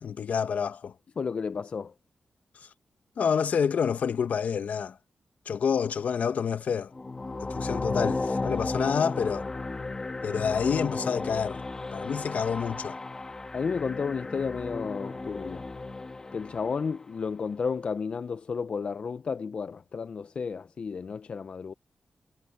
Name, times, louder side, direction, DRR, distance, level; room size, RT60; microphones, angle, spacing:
voice 1, 0.0-0.9 2.6-2.7 3.2-5.0 5.5-6.9 7.4-9.5 10.2-11.6 11.9-13.0, left 7 dB, 65° left, 0.9 m, -28 dB
voice 2, 1.2-1.9 13.5-15.7 16.3-21.7, left 5 dB, 45° left, 0.3 m, -32 dB
sound 1, 6.9-17.0, left 3 dB, 25° left, 1.4 m, -34 dB
wide cardioid pair, 160°, 3 cm